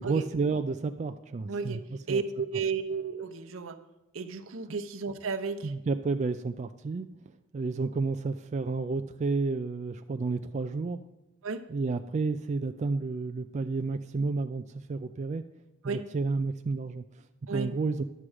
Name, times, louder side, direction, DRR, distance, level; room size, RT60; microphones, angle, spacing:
voice 1, 0.0-1.8 2.1-2.2 5.6-7.1 7.5-11.0 11.7-14.6 14.9-15.4 15.8-17.0 17.5-18.0, right 4 dB, 35° right, 8 dB, 0.3 m, -31 dB
voice 2, 1.5-1.8 2.1-3.8 4.1-5.7 11.4-11.6 15.8-16.0 17.5-17.7, right 5 dB, 75° right, 7 dB, 0.8 m, -33 dB
11.0 x 7.4 x 4.9 m, 0.99 s
head